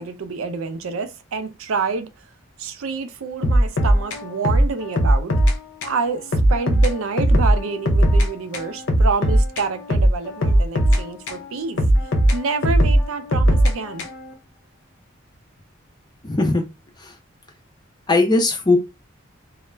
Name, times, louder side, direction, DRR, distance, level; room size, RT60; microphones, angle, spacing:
voice 1, 0.0-2.3 2.6-5.3 5.8-11.8 12.3-14.1, right 4 dB, 80° right, 0.4 m, -28 dB
sound 1, 3.4-5.6 5.8-6.0 6.3-8.3 8.5-11.4 11.8-14.3, right 1 dB, 65° left, 0.6 m, -18 dB
voice 2, 16.2-16.6 18.1-18.8, left 2 dB, 20° left, 0.5 m, -18 dB
2.3 x 2.1 x 3.1 m
head